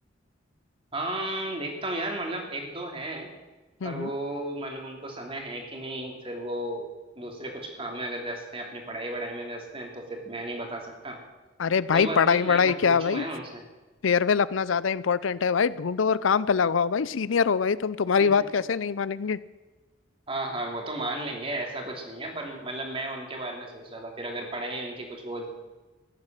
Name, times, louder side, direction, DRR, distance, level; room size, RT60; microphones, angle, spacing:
voice 1, 0.9-3.3 3.8-6.9 7.2-11.2 11.9-13.6 18.2-18.3 20.3-25.5, right 1 dB, 30° right, 2 dB, 3.0 m, -34 dB
voice 2, 11.6-13.2 14.0-19.4, left 6 dB, 85° left, 18 dB, 0.5 m, -23 dB
15.0 x 11.0 x 7.4 m, 1.2 s
head